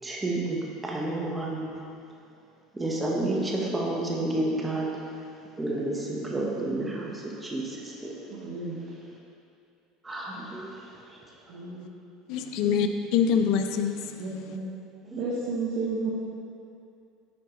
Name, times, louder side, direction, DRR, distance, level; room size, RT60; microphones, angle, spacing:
voice 1, 0.0-1.7 2.7-4.9 5.6-8.2 10.0-10.7 15.1-15.2, right 2 dB, 15° right, -2 dB, 1.1 m, -30 dB
voice 2, 8.3-8.8 11.5-11.9 12.6-12.8 14.2-14.7 15.2-16.1, right 3 dB, 60° right, -6 dB, 1.0 m, -32 dB
voice 3, 12.3-14.6, left 7 dB, 65° left, 7 dB, 0.4 m, -26 dB
8.4 x 4.6 x 3.1 m, 2.5 s
supercardioid pair, 115°, 0 cm